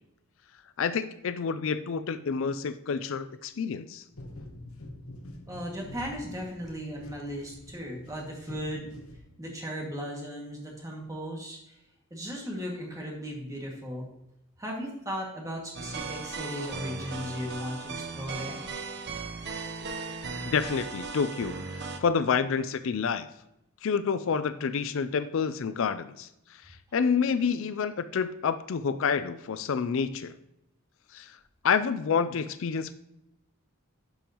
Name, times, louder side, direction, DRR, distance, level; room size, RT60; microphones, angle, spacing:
voice 1, 0.8-4.0 19.8-19.9 20.4-23.3 23.8-30.4 31.1-31.4 31.6-33.0, left 6 dB, 65° left, 12 dB, 0.4 m, -28 dB
ductrustle dark, 4.1-9.6, left 1 dB, 85° left, 1.0 m, -46 dB
voice 2, 5.5-8.9 9.4-11.8 12.1-14.1 14.6-18.6, equal, 15° right, -1 dB, 2.0 m, -37 dB
sound 1, 15.7-22.0, right 4 dB, 55° right, 0.9 m, -37 dB
11.5 x 5.4 x 3.0 m, 0.83 s
head